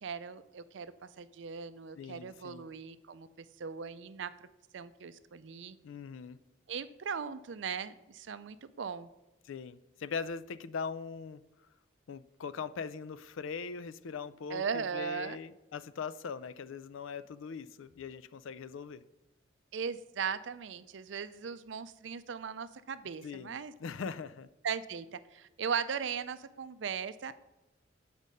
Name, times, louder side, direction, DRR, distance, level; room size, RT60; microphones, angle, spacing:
voice 1, 0.0-4.5 4.7-5.8 6.7-9.1 14.5-15.4 19.7-23.7 24.6-27.3, right 6 dB, 70° right, 13 dB, 0.4 m, -38 dB
voice 2, 2.0-2.7 5.8-6.4 9.4-11.4 12.1-19.0 23.2-24.5, left 5 dB, 85° left, 15 dB, 0.4 m, -41 dB
8.2 x 5.1 x 5.4 m, 1.0 s
head